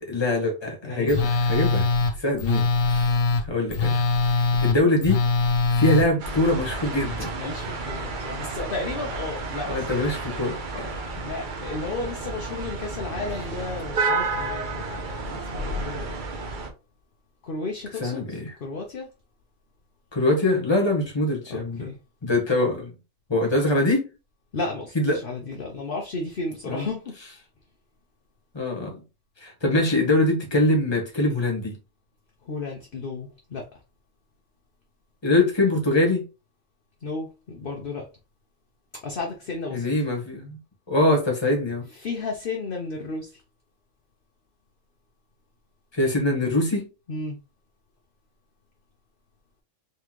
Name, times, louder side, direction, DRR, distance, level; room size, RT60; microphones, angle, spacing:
voice 1, 0.0-1.9 2.2-3.1 3.4-4.0 4.3-5.2 5.7-7.3 9.7-10.9 18.0-18.5 20.1-21.9 22.2-22.9 23.3-24.1 24.9-25.2 26.7-26.8 28.5-29.0 29.4-31.8 35.2-36.2 39.7-40.6 40.9-41.9 45.9-46.9, left 2 dB, 20° left, 1.3 m, -23 dB
voice 2, 0.8-1.2 7.4-10.2 11.2-16.1 17.4-19.1 21.5-22.0 24.5-27.2 32.4-33.7 37.0-38.1 39.0-39.9 41.9-43.4 47.1-47.4, left 3 dB, 50° left, 0.9 m, -33 dB
Telephone, 1.1-6.1, left 3 dB, 85° left, 1.1 m, -22 dB
sound 1, 6.2-16.7, right 3 dB, 45° right, 0.8 m, -31 dB
3.8 x 3.3 x 3.1 m
omnidirectional pair, 1.3 m